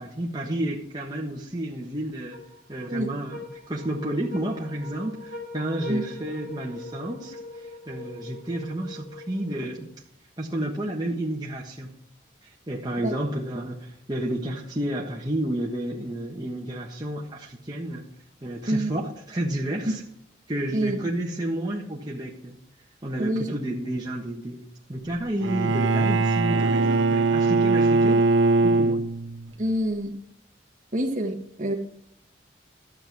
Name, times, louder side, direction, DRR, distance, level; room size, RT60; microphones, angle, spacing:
voice 1, 0.0-2.4 2.7-9.9 10.4-11.9 12.4-18.0 18.4-20.0 20.5-22.6 23.0-24.6 24.9-28.3 28.6-29.0, right 1 dB, 20° right, -2 dB, 1.3 m, -31 dB
sound 1, 2.3-9.9, left 2 dB, 55° left, 5.4 m, -42 dB
voice 2, 23.2-23.5 29.6-30.1 30.9-31.7, right 1 dB, 40° right, 3 dB, 1.6 m, -26 dB
Bowed string instrument, 25.4-29.5, right 3 dB, 90° right, 0.6 m, -21 dB
13.0 x 7.6 x 4.8 m, 0.71 s
head